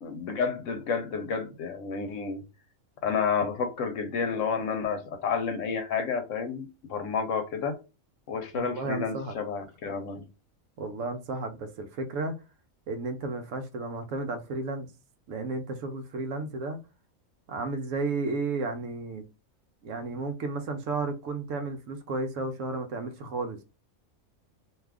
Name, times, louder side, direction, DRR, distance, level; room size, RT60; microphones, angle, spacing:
voice 1, 0.0-2.4 3.0-7.8 8.3-10.2, left 5 dB, 70° left, 1.0 m, -30 dB
voice 2, 8.5-9.3 10.8-12.3 12.9-14.9 15.3-16.8 17.5-19.2 19.8-23.6, right 3 dB, 70° right, 1.0 m, -33 dB
2.6 x 2.3 x 3.4 m
omnidirectional pair, 1.4 m